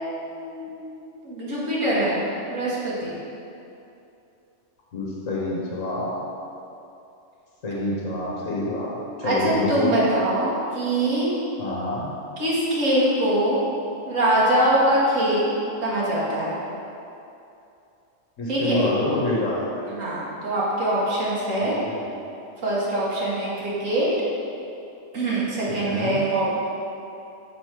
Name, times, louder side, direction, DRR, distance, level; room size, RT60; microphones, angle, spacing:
voice 1, 0.0-2.2 2.5-3.2 9.2-11.4 12.4-13.6 14.1-16.6 18.5-18.9 20.0-21.8 22.6-24.1 25.1-26.6, right 1 dB, 85° right, -7 dB, 1.9 m, -23 dB
voice 2, 4.9-6.1 7.6-8.9 9.2-9.9 11.6-12.1 18.4-19.8 21.6-22.0 25.7-26.2, left 1 dB, 80° left, -5 dB, 1.5 m, -27 dB
6.2 x 4.8 x 5.9 m, 2.7 s
omnidirectional pair, 1.3 m